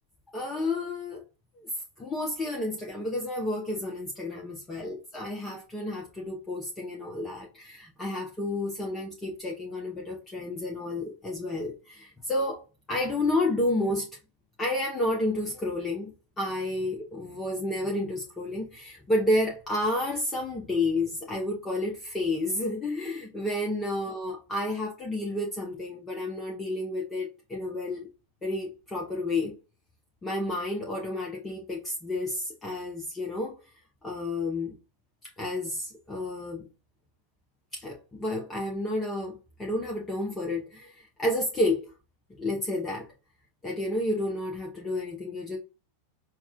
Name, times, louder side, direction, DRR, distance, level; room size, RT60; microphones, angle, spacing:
voice 1, 0.3-1.2 1.6-1.7 2.0-12.6 12.9-14.1 14.6-16.1 16.4-28.1 28.4-29.6 30.2-33.6 34.0-34.7 35.4-36.7 37.7-41.9 42.4-43.1 43.6-45.6, left 1 dB, 15° left, 0.8 m, -30 dB
5.8 x 2.2 x 2.3 m
figure-of-eight pair, 90°, 0 cm